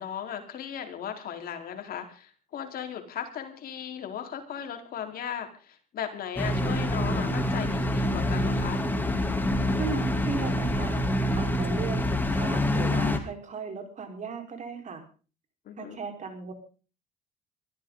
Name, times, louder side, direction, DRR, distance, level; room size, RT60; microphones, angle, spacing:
voice 1, 0.0-8.8 15.7-16.0, left 9 dB, 60° left, 5 dB, 4.3 m, -37 dB
sound 1, 6.4-13.2, left 1 dB, 10° left, 3.1 m, -26 dB
voice 2, 9.8-11.0 11.4-15.0 15.8-16.5, right 5 dB, 45° right, 6 dB, 4.8 m, -37 dB
23.5 x 15.0 x 4.0 m, 0.37 s
cardioid pair, 110°, 17 cm